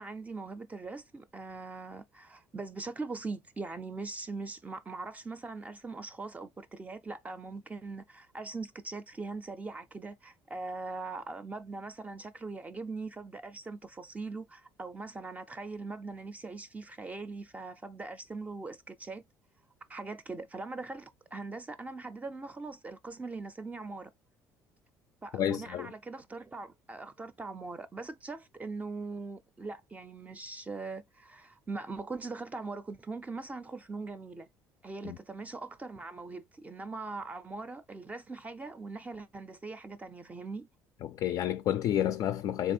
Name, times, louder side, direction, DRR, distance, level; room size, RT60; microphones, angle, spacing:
voice 1, 0.0-19.2 19.9-24.1 25.2-34.5 34.8-40.7, right 3 dB, 20° right, 0.4 m, -41 dB
voice 2, 25.3-25.9 35.0-35.2 41.0-42.7, left 11 dB, 60° left, 0.4 m, -30 dB
3.3 x 3.2 x 4.2 m
supercardioid pair, 95°, 7 cm